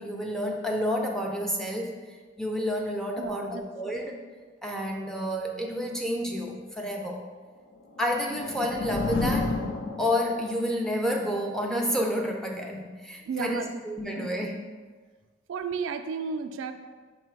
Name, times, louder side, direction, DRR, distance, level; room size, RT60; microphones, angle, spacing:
voice 1, 0.0-4.2 4.6-7.2 8.0-9.6 10.0-14.5, equal, 5° left, 1 dB, 0.4 m, -30 dB
voice 2, 3.2-4.0 13.3-13.8 14.2-14.4 15.5-16.7, right 5 dB, 80° right, 7 dB, 0.3 m, -33 dB
sound 1, 7.8-10.7, left 3 dB, 75° left, 0.5 m, -30 dB
5.3 x 2.2 x 4.5 m, 1.4 s
head